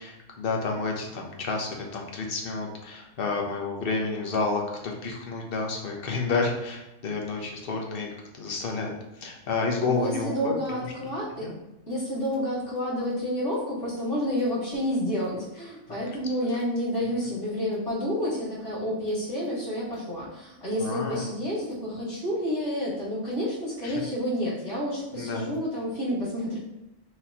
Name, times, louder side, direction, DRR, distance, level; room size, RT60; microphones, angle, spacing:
voice 1, 0.0-8.1 8.4-8.9 9.2-10.5 11.4-11.5 20.8-21.3 23.8-23.9 25.2-25.5, left 3 dB, 55° left, 0 dB, 0.9 m, -30 dB
voice 2, 9.9-11.5 11.9-26.6, equal, 70° left, -10 dB, 2.1 m, -29 dB
5.9 x 2.9 x 2.8 m, 0.93 s
omnidirectional pair, 1.2 m